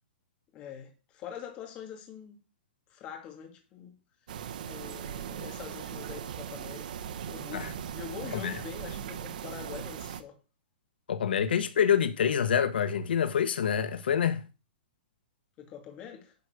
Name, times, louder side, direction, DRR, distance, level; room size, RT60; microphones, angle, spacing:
voice 1, 0.5-2.4 2.9-4.0 4.6-6.9 7.3-10.4 15.6-16.3, left 8 dB, 20° left, 2.6 m, -44 dB
sound 1, 4.3-10.2, right 9 dB, 55° right, 1.1 m, -39 dB
voice 2, 11.1-14.4, left 8 dB, 85° left, 1.2 m, -26 dB
11.5 x 4.9 x 6.4 m
hypercardioid pair, 165°, 5 cm